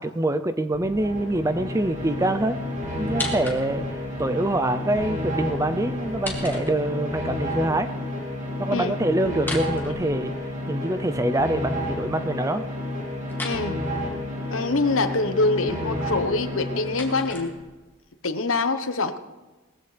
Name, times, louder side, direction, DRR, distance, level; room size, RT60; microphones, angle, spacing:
voice 1, 0.0-2.6 3.0-7.9 8.6-10.3 10.7-12.6, right 1 dB, 15° right, 11 dB, 0.5 m, -25 dB
sound 1, 0.7-6.7, left 1 dB, 55° left, 0.9 m, -43 dB
sound 2, 0.8-17.6, left 1 dB, 35° right, 2.4 m, -31 dB
sound 3, 3.0-4.0 6.0-7.2 9.3-10.7 13.3-13.6 16.4-18.0, left 2 dB, 10° left, 2.3 m, -36 dB
voice 2, 8.7-9.4 13.4-13.8 14.5-17.5 18.2-19.2, left 3 dB, 80° left, 10 dB, 1.0 m, -25 dB
20.0 x 15.0 x 3.3 m, 1.2 s
head